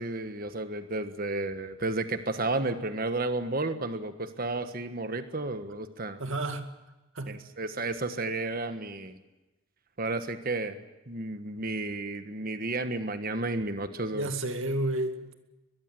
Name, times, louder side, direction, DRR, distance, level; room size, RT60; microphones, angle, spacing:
voice 1, 0.0-6.2 7.3-9.2 10.0-10.8 11.1-14.3, right 2 dB, 40° right, 9 dB, 1.4 m, -32 dB
voice 2, 6.2-6.7 7.1-7.5 14.1-15.3, right 2 dB, 65° right, 7 dB, 2.2 m, -31 dB
22.5 x 21.5 x 7.8 m, 1.1 s
head